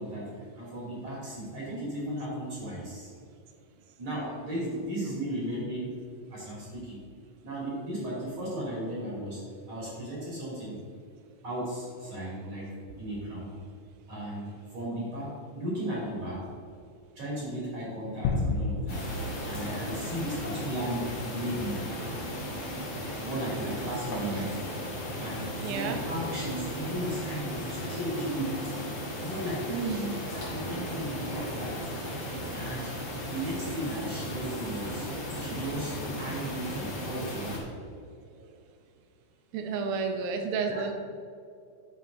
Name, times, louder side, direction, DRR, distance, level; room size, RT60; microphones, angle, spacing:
voice 1, 0.0-3.1 4.0-6.0 6.3-7.0 7.4-10.8 11.4-13.5 14.1-16.4 17.2-19.0 19.5-21.8 23.2-24.5 25.2-28.6 29.2-29.7 30.2-31.8 32.5-33.0 33.2-35.1 35.4-37.6 38.3-38.5 40.7-40.9, right 1 dB, 45° right, -7 dB, 3.4 m, -35 dB
sound 1, 18.2-21.1, left 3 dB, 75° left, 2.2 m, -33 dB
sound 2, 18.9-37.6, equal, 35° left, 2.2 m, -36 dB
voice 2, 24.2-24.5 25.6-26.0 29.7-30.2 39.5-40.9, right 5 dB, 75° right, 4 dB, 2.6 m, -31 dB
9.5 x 7.3 x 3.8 m, 2.4 s
omnidirectional pair, 4.4 m